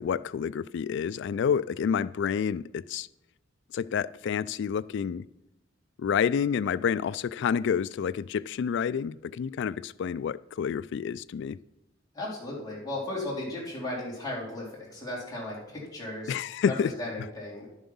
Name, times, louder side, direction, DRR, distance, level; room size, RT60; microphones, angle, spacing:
voice 1, 0.0-3.1 3.7-5.3 6.0-11.6 16.3-16.9, left 7 dB, 65° left, 0.3 m, -29 dB
voice 2, 12.1-16.4 16.6-17.7, left 1 dB, 20° left, 3.6 m, -35 dB
11.5 x 7.2 x 5.5 m
head